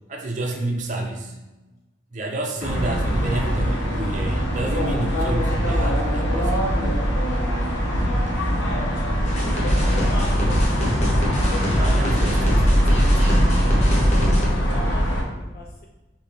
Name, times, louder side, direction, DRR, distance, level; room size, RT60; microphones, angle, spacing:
voice 1, 0.1-1.4 2.1-6.7 11.5-13.3, right 2 dB, 40° right, 1 dB, 0.6 m, -30 dB
sound 1, 2.6-15.2, equal, 80° left, 1.0 m, -22 dB
sound 2, 9.2-14.5, equal, 35° left, 0.8 m, -23 dB
voice 2, 9.3-9.6 11.3-11.5 14.3-15.1 15.4-15.9, left 2 dB, 50° left, 2 dB, 0.3 m, -41 dB
5.0 x 2.7 x 3.4 m, 1.1 s
head